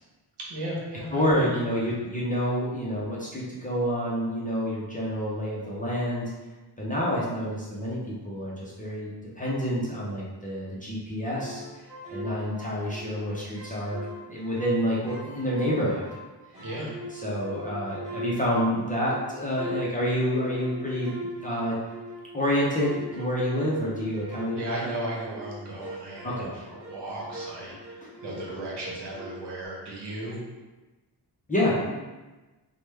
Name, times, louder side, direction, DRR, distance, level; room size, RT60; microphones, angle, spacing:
voice 1, 0.4-1.5 1.8-1.9 16.6-16.9 24.5-30.4, right 1 dB, 75° right, -4 dB, 0.9 m, -35 dB
voice 2, 1.1-6.3 6.8-9.1 9.3-11.6 12.1-16.1 17.2-21.1 21.4-21.8 22.3-24.6 26.2-26.5 31.5-31.9, equal, 20° left, -6 dB, 0.5 m, -28 dB
sound 1, 11.4-13.2 13.5-16.3 16.5-22.4 22.8-28.5 28.8-29.7, equal, 45° right, 1.0 m, -41 dB
3.2 x 2.1 x 3.2 m, 1.2 s
wide cardioid pair, 175°, 41 cm